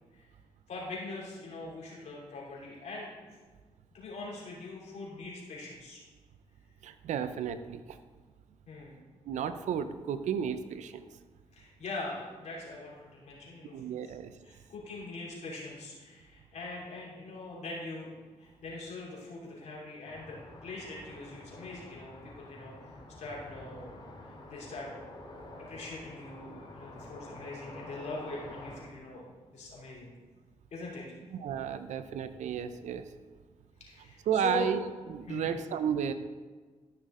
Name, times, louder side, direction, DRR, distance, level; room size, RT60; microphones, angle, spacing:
voice 1, 0.7-3.1 3.9-6.0 8.7-9.0 11.5-13.7 14.0-14.1 14.4-25.0 25.6-30.1 30.7-31.2 33.8-34.7 35.3-35.6, left 2 dB, 70° left, -5 dB, 3.0 m, -42 dB
voice 2, 6.8-8.0 9.3-11.0 13.7-14.3 31.4-33.1 34.3-34.8 35.1-36.1, right 8 dB, 80° right, 11 dB, 0.6 m, -32 dB
sound 1, 20.0-28.8, left 2 dB, 40° left, 2.8 m, -48 dB
13.0 x 5.8 x 3.8 m, 1.4 s
supercardioid pair, 60°, 12 cm